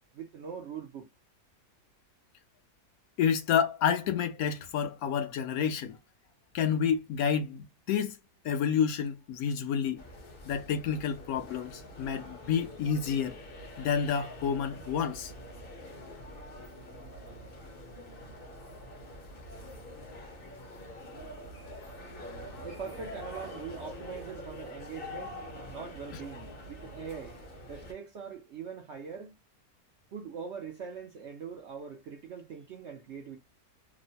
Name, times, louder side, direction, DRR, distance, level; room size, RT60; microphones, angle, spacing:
voice 1, 0.1-1.1 22.6-25.4 25.7-29.3 30.1-33.4, right 6 dB, 65° right, 0.7 m, -42 dB
voice 2, 3.2-6.0 6.5-8.2 8.4-10.0 10.5-13.4 13.8-15.3, left 7 dB, 70° left, 1.0 m, -29 dB
sound 1, 10.0-27.9, left 1 dB, 45° left, 0.8 m, -45 dB
3.0 x 2.1 x 2.6 m
omnidirectional pair, 1.7 m